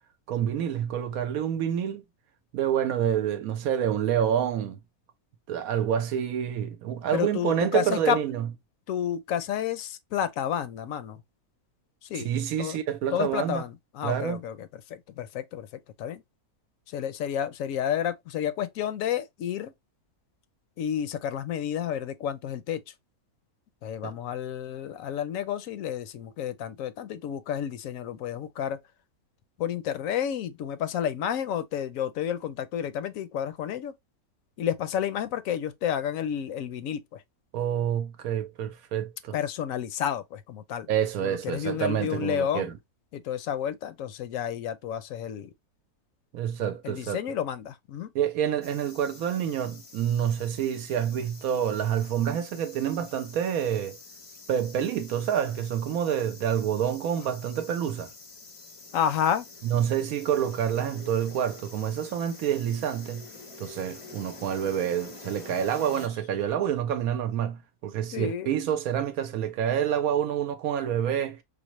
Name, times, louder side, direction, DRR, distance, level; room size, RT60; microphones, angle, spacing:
voice 1, 0.3-2.0 2.5-4.8 5.5-8.5 12.1-13.6 14.0-14.4 24.0-24.1 37.5-39.3 40.9-42.7 46.3-47.2 48.1-54.0 54.5-58.1 59.6-63.3 63.6-71.4, right 9 dB, 75° right, 1.0 m, -28 dB
voice 2, 7.1-8.2 8.9-11.2 12.0-12.3 12.6-12.8 13.1-15.7 16.0-16.2 16.9-19.7 20.8-22.8 23.8-28.8 29.6-33.9 34.6-37.2 39.3-40.9 41.2-42.7 43.1-45.5 46.8-48.1 58.9-59.5 68.1-68.5, left 9 dB, 70° left, 0.9 m, -30 dB
sound 1, 48.6-66.1, left 3 dB, 40° left, 0.5 m, -47 dB
5.1 x 2.1 x 3.0 m
omnidirectional pair, 1.6 m